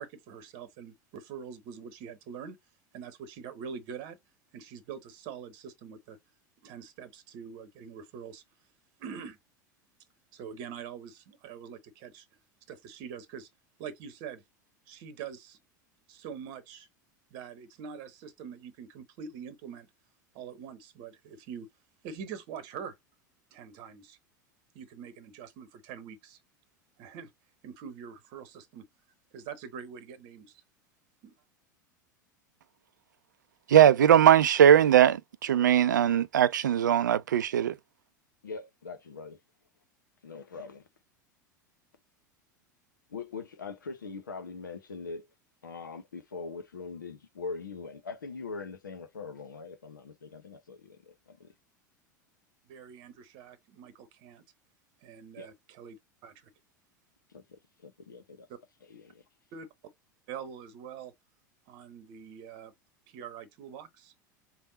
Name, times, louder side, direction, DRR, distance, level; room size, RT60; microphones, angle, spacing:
voice 1, 0.0-2.6 2.9-4.2 4.5-6.2 6.6-8.4 9.0-9.4 10.3-12.3 12.7-13.5 13.8-14.4 14.9-15.6 16.1-16.9 17.3-19.9 20.3-21.7 22.0-23.0 23.5-24.2 24.7-26.4 27.0-27.3 27.6-28.9 29.3-30.6 31.2-31.3 52.7-54.4 55.0-56.5 58.5-58.6 59.5-59.7 60.3-61.1 61.7-62.7 63.1-64.1, right 7 dB, 50° right, 0.9 m, -44 dB
voice 2, 33.7-37.8, right 10 dB, 75° right, 0.4 m, -20 dB
voice 3, 38.4-39.4 40.2-40.9 43.1-45.3 45.6-51.5 55.4-55.5 57.3-58.5 58.9-59.2, left 4 dB, 80° left, 0.7 m, -42 dB
3.5 x 2.1 x 3.9 m
figure-of-eight pair, 80°, 10 cm